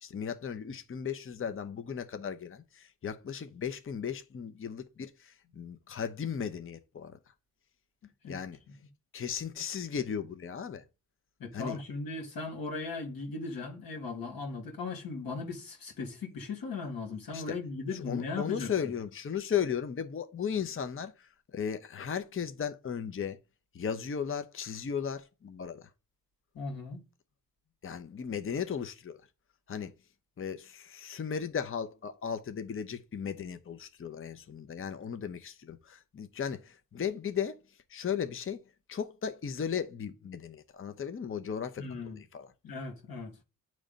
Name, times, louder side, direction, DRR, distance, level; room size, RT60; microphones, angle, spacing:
voice 1, 0.0-7.2 8.3-8.6 9.1-10.8 11.5-11.8 17.3-17.4 18.1-23.4 23.7-25.9 27.8-29.2 29.7-29.9 30.4-37.6 37.9-38.6 38.9-42.5, left 7 dB, 40° left, 0.7 m, -36 dB
voice 2, 8.0-8.4 11.4-18.7 26.5-27.0 41.8-42.2 42.6-43.3, left 4 dB, 90° left, 1.7 m, -38 dB
8.8 x 3.2 x 5.1 m
cardioid pair, 85°, 34 cm